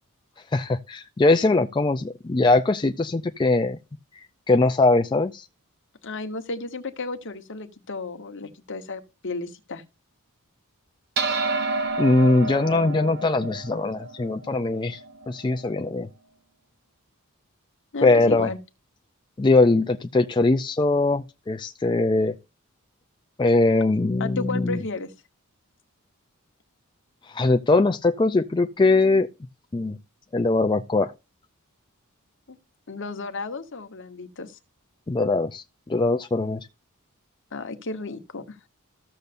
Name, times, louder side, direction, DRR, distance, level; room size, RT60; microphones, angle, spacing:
voice 1, 0.5-3.8 4.5-5.5 12.0-15.0 15.3-16.1 18.0-18.5 19.4-22.3 23.4-24.8 27.3-29.3 29.7-30.0 30.3-31.1 35.1-35.6 35.9-36.6, left 2 dB, 20° left, 0.4 m, -21 dB
voice 2, 6.0-9.8 17.9-18.6 24.2-25.1 32.5-32.6 32.9-34.6 37.5-38.6, left 3 dB, 55° left, 1.1 m, -33 dB
sound 1, 11.2-15.8, right 3 dB, 50° right, 0.9 m, -30 dB
14.5 x 6.7 x 2.6 m
head